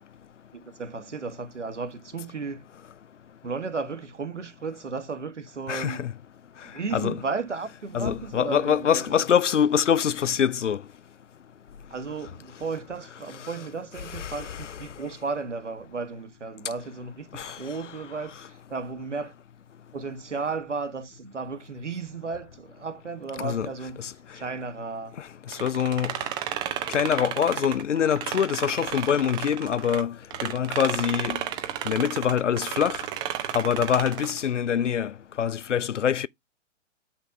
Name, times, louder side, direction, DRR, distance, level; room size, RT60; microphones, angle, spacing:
voice 1, 0.5-2.7 3.4-6.2 6.7-9.3 11.9-19.3 19.9-24.1 24.3-25.2, right 4 dB, 75° right, 1.8 m, -34 dB
voice 2, 5.7-6.1 6.9-7.2 7.9-10.8 14.1-14.6 17.3-17.6 23.4-23.7 25.6-26.1 26.9-30.1 30.4-31.4 31.9-33.0 33.5-36.3, left 8 dB, 75° left, 0.5 m, -24 dB
sound 1, 25.5-30.0 30.3-34.4, right 11 dB, 10° right, 0.6 m, -33 dB
8.2 x 5.6 x 3.3 m
figure-of-eight pair, 120°, 37 cm